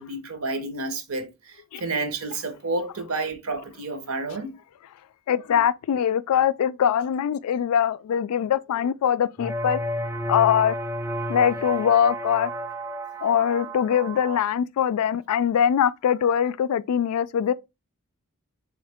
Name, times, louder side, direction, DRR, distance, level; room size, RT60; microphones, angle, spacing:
voice 1, 0.0-4.5, right 3 dB, 70° right, 0.8 m, -30 dB
voice 2, 5.3-9.8 10.3-10.7 11.3-12.5 13.2-17.5, left 8 dB, 85° left, 0.3 m, -22 dB
sound 1, 9.4-14.4, equal, 10° right, 0.3 m, -31 dB
3.6 x 3.1 x 3.3 m
head